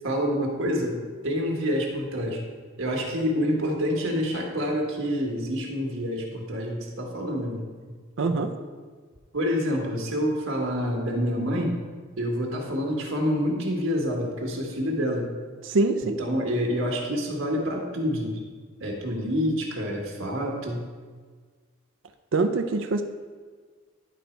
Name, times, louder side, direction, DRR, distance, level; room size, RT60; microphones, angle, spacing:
voice 1, 0.0-2.4 2.8-7.6 9.3-11.8 12.2-15.3 16.0-18.4 18.8-20.8, equal, 85° right, 0 dB, 1.5 m, -27 dB
voice 2, 8.2-8.5 15.6-16.2 22.3-23.0, right 3 dB, 70° right, 6 dB, 0.5 m, -24 dB
11.0 x 4.0 x 4.5 m, 1.5 s
head